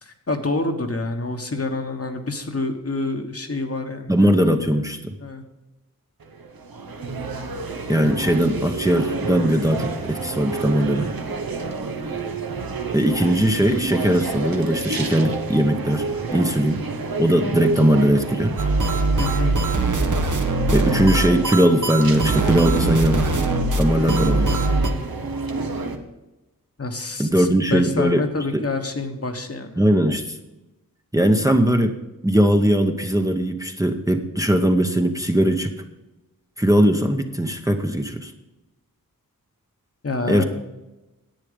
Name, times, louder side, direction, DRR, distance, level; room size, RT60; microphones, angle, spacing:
voice 1, 0.0-4.5 5.2-5.4 19.2-19.6 26.8-29.8 40.0-40.4, left 3 dB, 45° left, 5 dB, 1.2 m, -27 dB
voice 2, 4.1-5.1 7.9-11.1 12.9-16.0 16.3-16.8 17.2-18.5 20.7-23.4 23.8-24.6 27.2-28.2 28.5-28.6 29.8-30.4 31.1-32.0 32.2-35.7 36.6-38.3 40.3-40.4, equal, 10° right, 4 dB, 0.8 m, -19 dB
sound 1, 6.2-26.0, right 4 dB, 85° right, 1.1 m, -29 dB
sound 2, 18.6-24.9, right 2 dB, 60° right, 1.0 m, -22 dB
10.5 x 8.3 x 5.1 m, 1.0 s
wide cardioid pair, 70°, 34 cm